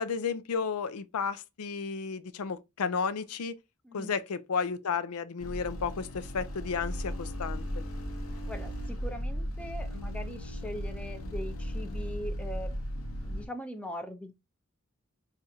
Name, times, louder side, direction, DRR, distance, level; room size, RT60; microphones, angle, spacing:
voice 1, 0.0-3.6 3.9-7.8, left 5 dB, 90° left, 0.5 m, -33 dB
sound 1, 5.4-13.5, equal, 70° left, 0.9 m, -36 dB
voice 2, 8.5-12.8 13.2-14.3, equal, 5° left, 0.5 m, -41 dB
5.5 x 2.4 x 2.7 m
head